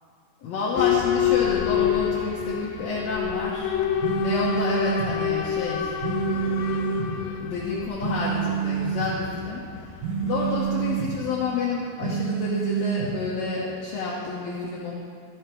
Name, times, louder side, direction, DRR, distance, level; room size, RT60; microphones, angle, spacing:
voice 1, 0.4-3.8 4.2-5.9 6.2-9.6 10.2-14.9, left 4 dB, 65° left, -6 dB, 1.8 m, -29 dB
Boat Water vehicle / Alarm, 0.7-11.4, left 10 dB, 85° left, 2.4 m, -28 dB
sound 1, 4.0-5.1 6.0-7.1 8.0-9.1 10.0-11.1 12.0-13.1, right 8 dB, 65° right, 2.7 m, -27 dB
13.0 x 6.4 x 4.5 m, 2.3 s
omnidirectional pair, 4.2 m